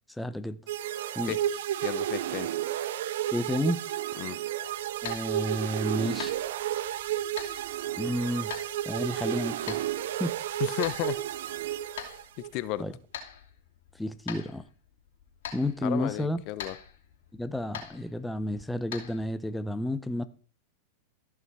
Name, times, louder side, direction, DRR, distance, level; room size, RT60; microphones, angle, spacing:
voice 1, 0.2-0.6 1.2-1.3 3.3-3.8 5.0-6.3 8.0-8.5 8.8-9.8 10.2-10.3 12.8-12.9 14.0-14.6 15.5-16.4 17.4-20.2, left 1 dB, 5° left, 0.6 m, -31 dB
sound 1, 0.7-12.5, right 12 dB, 70° right, 0.5 m, -32 dB
voice 2, 1.8-2.5 4.2-4.4 10.6-11.2 12.5-12.9 15.8-16.8, left 15 dB, 50° left, 0.7 m, -33 dB
sound 2, 4.6-19.3, left 8 dB, 70° left, 2.8 m, -45 dB
14.0 x 6.0 x 4.7 m
hypercardioid pair, 120°, 0 cm